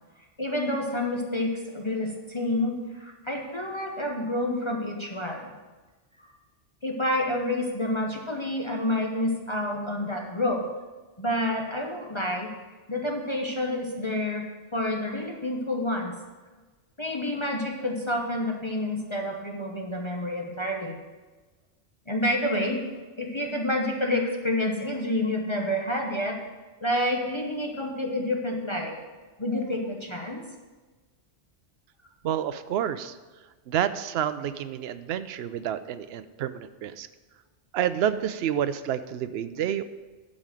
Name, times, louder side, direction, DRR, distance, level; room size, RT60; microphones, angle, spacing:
voice 1, 0.4-5.5 6.8-10.7 11.2-12.5 12.9-14.4 14.7-16.1 17.0-21.0 22.1-22.8 23.2-26.4 26.8-29.0 29.4-30.4, left 1 dB, 25° left, 0 dB, 1.0 m, -28 dB
voice 2, 32.2-33.2 33.7-37.1 37.7-39.8, right 10 dB, 65° right, 12 dB, 0.8 m, -29 dB
11.0 x 5.2 x 7.4 m, 1.3 s
omnidirectional pair, 1.2 m